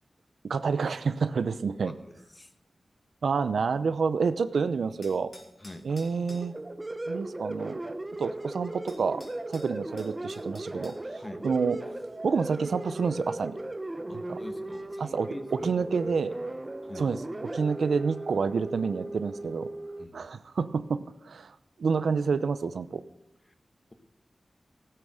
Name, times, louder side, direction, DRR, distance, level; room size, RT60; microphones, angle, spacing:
voice 1, 0.4-1.9 3.2-5.3 5.8-6.5 7.1-7.8 8.2-9.2 9.5-10.9 11.4-11.8 12.2-13.5 14.3-14.4 15.0-16.3 17.0-17.2 17.5-19.7 20.1-23.0, right 5 dB, 90° right, 13 dB, 0.7 m, -28 dB
sound 1, 5.0-6.5 8.4-8.5 8.9-11.0, left 2 dB, 50° left, 3.8 m, -52 dB
sound 2, 6.3-20.0, right 2 dB, 30° right, 1.0 m, -37 dB
voice 2, 11.2-11.5 14.1-15.7 16.8-17.2 20.0-20.3, left 1 dB, 30° left, 8 dB, 1.6 m, -44 dB
16.5 x 9.1 x 6.5 m, 0.84 s
cardioid pair, 60°, 0 cm